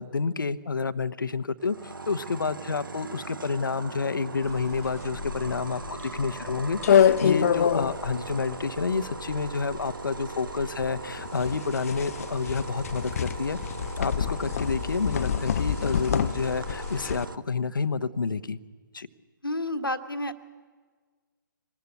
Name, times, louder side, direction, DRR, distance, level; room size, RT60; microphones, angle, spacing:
voice 1, 0.0-1.8 2.1-13.6 14.0-18.6 18.9-19.1, left 4 dB, 70° left, 11 dB, 1.0 m, -29 dB
sound 1, 1.6-17.3, right 3 dB, 75° right, 1.2 m, -39 dB
sound 2, 4.5-17.3, left 8 dB, 45° left, 0.6 m, -27 dB
voice 2, 19.4-20.4, left 1 dB, 90° left, 7 dB, 1.6 m, -30 dB
24.0 x 19.5 x 8.1 m, 1.5 s
figure-of-eight pair, 135°, 11 cm